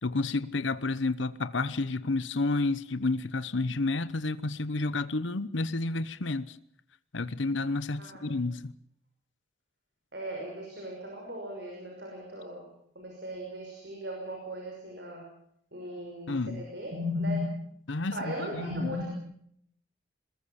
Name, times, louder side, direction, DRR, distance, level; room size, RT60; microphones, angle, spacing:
voice 1, 0.0-6.6 7.1-8.7 16.3-16.7 17.9-18.9, left 3 dB, 75° left, 0.9 m, -30 dB
voice 2, 8.0-8.3 10.1-12.7 13.0-15.2 15.7-17.6 18.1-19.1, left 1 dB, 60° right, 5.9 m, -36 dB
21.5 x 21.0 x 7.1 m
head